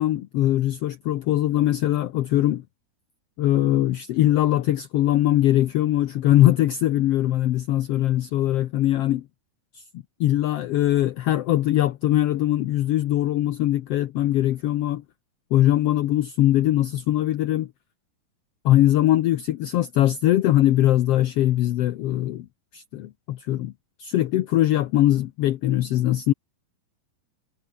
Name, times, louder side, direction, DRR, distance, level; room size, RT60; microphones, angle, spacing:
voice 1, 0.0-2.6 3.4-9.2 9.7-9.8 10.2-15.0 15.5-17.7 18.6-22.5 22.7-23.7 24.0-26.3, left 14 dB, 75° left, 1.4 m, -21 dB
omnidirectional pair, 3.8 m